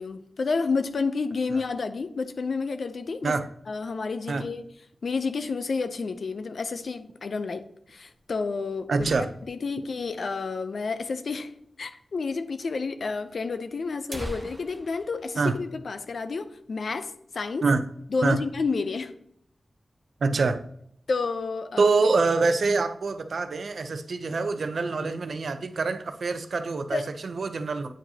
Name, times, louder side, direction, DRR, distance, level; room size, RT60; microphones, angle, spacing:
voice 1, 0.0-3.3 3.7-4.6 5.0-9.1 9.5-17.7 18.1-19.1 21.1-21.9 26.9-27.1, left 4 dB, 70° left, 0.5 m, -30 dB
sound 1, 7.9-9.7 10.1-10.2 10.4-10.5 11.1-11.2 12.1-12.3 12.6-12.7 13.4-13.5 13.9-16.5 16.8-16.9 17.3-17.6 18.0-18.6, right 1 dB, 20° right, 0.7 m, -43 dB
voice 2, 8.9-9.3 15.4-15.6 17.6-17.8 18.2-18.4 20.2-20.6 21.8-27.9, right 4 dB, 70° right, 0.5 m, -25 dB
8.9 x 4.7 x 2.8 m
wide cardioid pair, 115°, 0 cm